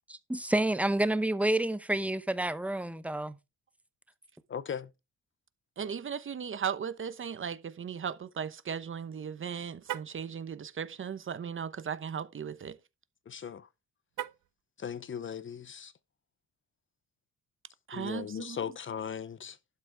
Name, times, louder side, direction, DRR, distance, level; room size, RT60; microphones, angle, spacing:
voice 1, 0.1-3.4, right 1 dB, 5° right, 0.7 m, -29 dB
voice 2, 4.5-4.9 13.3-13.7 14.8-15.9 17.9-19.6, left 7 dB, 35° left, 0.7 m, -38 dB
voice 3, 5.8-12.7 17.9-18.6, right 7 dB, 35° right, 0.9 m, -37 dB
Car, 9.8-10.2 14.1-14.6, right 13 dB, 65° right, 0.7 m, -39 dB
11.5 x 7.5 x 3.5 m
cardioid pair, 125°, 33 cm